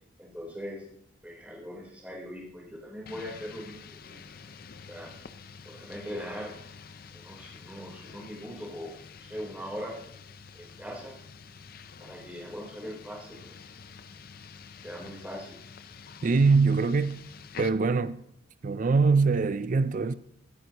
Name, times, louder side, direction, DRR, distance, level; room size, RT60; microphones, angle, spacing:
voice 1, 0.2-0.8 1.2-4.2 4.9-5.1 5.6-6.5 7.1-9.0 9.2-9.9 10.6-11.1 12.0-13.5 14.8-15.6, equal, 5° right, 3.6 m, -40 dB
sound 1, 3.1-17.7, left 6 dB, 45° left, 0.5 m, -48 dB
voice 2, 16.2-17.2 17.6-18.2 18.6-20.1, right 4 dB, 40° right, 0.4 m, -23 dB
17.0 x 9.0 x 2.9 m
head